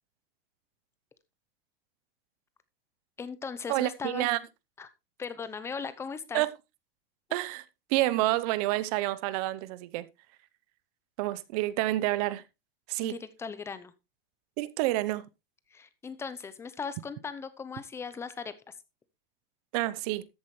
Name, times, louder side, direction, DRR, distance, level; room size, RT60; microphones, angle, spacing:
voice 1, 3.2-4.3 4.8-4.9 5.2-6.4 13.0-13.9 15.7-18.8, left 5 dB, 10° left, 0.7 m, -38 dB
voice 2, 3.7-4.4 6.3-6.5 7.3-7.6 7.9-10.1 11.2-12.4 12.9-13.2 14.6-15.2 19.7-20.2, right 17 dB, 40° right, 0.8 m, -28 dB
13.5 x 8.1 x 3.2 m
supercardioid pair, 165°, 29 cm